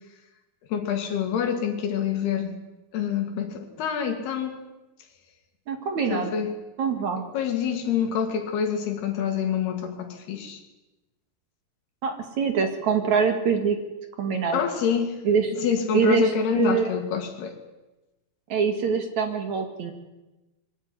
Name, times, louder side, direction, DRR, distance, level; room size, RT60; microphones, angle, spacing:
voice 1, 0.7-2.6 2.9-4.6 6.1-6.5 7.3-10.6 14.5-15.2 15.5-17.6, left 8 dB, 80° left, 6 dB, 4.3 m, -26 dB
voice 2, 5.7-6.3 6.8-7.2 12.0-13.8 14.2-14.6 15.2-15.5 15.9-16.9 18.5-19.9, right 6 dB, 55° right, 6 dB, 3.0 m, -24 dB
23.5 x 15.0 x 9.7 m, 1.1 s
omnidirectional pair, 4.5 m